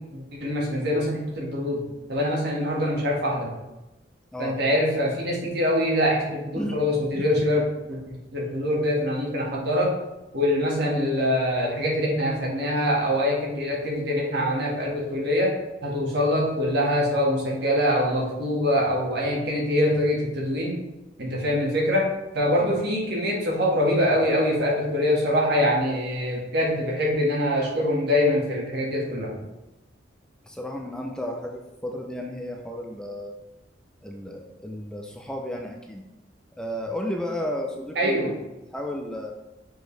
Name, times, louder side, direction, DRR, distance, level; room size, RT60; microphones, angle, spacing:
voice 1, 0.1-1.8 2.1-3.5 4.4-7.6 7.9-9.9 10.3-15.5 15.8-20.8 21.2-22.1 22.3-29.3 38.0-38.3, left 1 dB, 60° right, -3 dB, 1.7 m, -24 dB
voice 2, 7.1-7.5 22.6-22.7 30.5-33.4 34.0-36.0 36.5-38.2 38.7-39.3, left 1 dB, 5° left, 2 dB, 0.4 m, -33 dB
6.2 x 5.0 x 3.2 m, 1.0 s
head